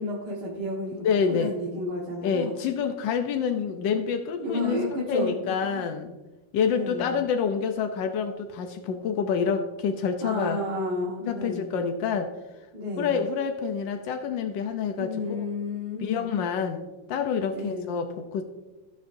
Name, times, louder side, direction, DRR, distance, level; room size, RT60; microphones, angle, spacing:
voice 1, 0.0-2.6 4.4-5.9 6.7-7.1 10.2-11.7 12.7-13.1 14.9-16.3 17.5-17.9, left 1 dB, 65° right, -6 dB, 2.3 m, -32 dB
voice 2, 0.9-1.5 2.2-6.1 6.5-10.6 11.3-12.3 13.0-15.4 16.0-18.4, left 6 dB, 85° left, 6 dB, 1.5 m, -27 dB
16.5 x 7.4 x 2.7 m, 1.1 s
omnidirectional pair, 2.0 m